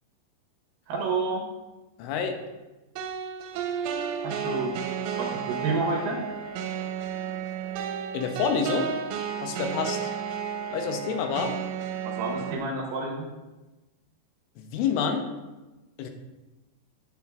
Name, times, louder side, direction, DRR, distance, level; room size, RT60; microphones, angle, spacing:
voice 1, 0.9-1.4 4.2-4.7 5.2-6.2 12.0-13.3, right 3 dB, 70° right, 0 dB, 3.1 m, -29 dB
voice 2, 2.0-2.4 8.1-8.9 9.4-10.0 10.7-11.6 14.6-15.3 16.0-16.1, left 6 dB, 85° left, 5 dB, 3.5 m, -28 dB
sound 1, 3.0-12.6, right 8 dB, 85° right, 3.1 m, -32 dB
10.0 x 9.0 x 3.6 m, 1.1 s
omnidirectional pair, 5.5 m